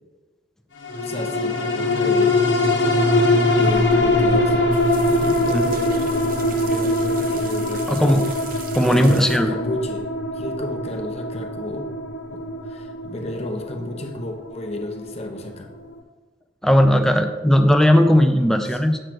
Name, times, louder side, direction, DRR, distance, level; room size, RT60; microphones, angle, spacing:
sound 1, 0.8-15.5 15.9-16.0, left 2 dB, 75° left, 1.0 m, -22 dB
voice 1, 1.0-2.5 3.5-4.7 5.1-8.2 8.8-10.1 10.3-11.9 12.3-15.7 18.6-18.8, left 1 dB, 35° left, 3 dB, 0.8 m, -32 dB
sound 2, 3.6-9.4, right 6 dB, 50° right, 0.7 m, -40 dB
voice 2, 7.9-8.2 8.7-9.5 16.6-19.0, equal, 5° left, 5 dB, 0.4 m, -17 dB
7.7 x 3.2 x 6.0 m, 1.3 s
head